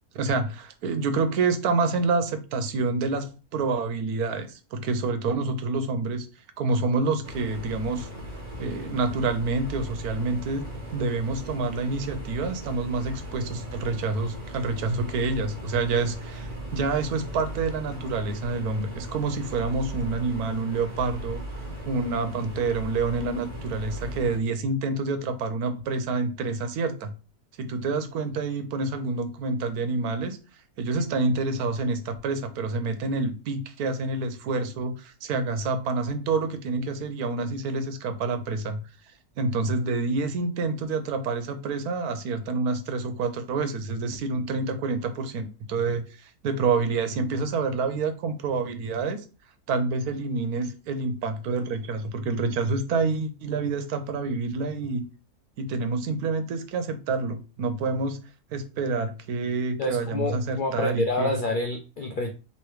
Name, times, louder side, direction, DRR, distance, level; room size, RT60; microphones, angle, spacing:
voice 1, 0.1-6.3 6.6-8.1 8.6-10.6 10.9-21.4 21.9-27.1 27.6-30.4 30.8-38.8 39.4-49.2 49.7-55.1 55.6-58.2 58.5-61.3, right 3 dB, 85° right, 9 dB, 1.2 m, -28 dB
sound 1, 7.2-24.4, equal, 30° right, 1.2 m, -38 dB
voice 2, 59.8-62.3, left 2 dB, 85° left, 5 dB, 0.4 m, -27 dB
3.1 x 3.0 x 4.7 m, 0.32 s
omnidirectional pair, 1.5 m